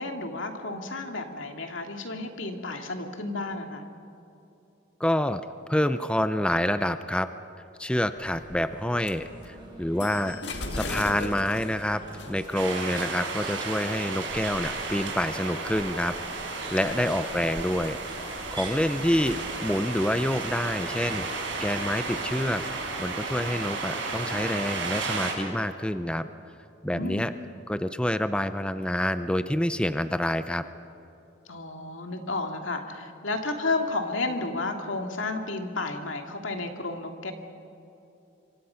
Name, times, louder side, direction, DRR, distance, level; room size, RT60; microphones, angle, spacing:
voice 1, 0.0-3.8 16.8-17.1 26.9-27.4 31.5-37.3, left 2 dB, 85° left, 4 dB, 2.4 m, -32 dB
voice 2, 5.0-5.4 5.7-7.3 7.8-12.0 12.3-16.1 16.5-18.0 18.5-26.3 26.8-27.3 27.7-30.6, left 1 dB, 5° left, 11 dB, 0.5 m, -27 dB
sound 1, 8.2-23.6, left 2 dB, 60° left, 2.1 m, -43 dB
sound 2, 8.3-22.0, right 1 dB, 25° right, 4.4 m, -45 dB
sound 3, 12.5-25.3, right 3 dB, 75° right, 5.7 m, -33 dB
26.5 x 24.5 x 5.8 m, 2.8 s
head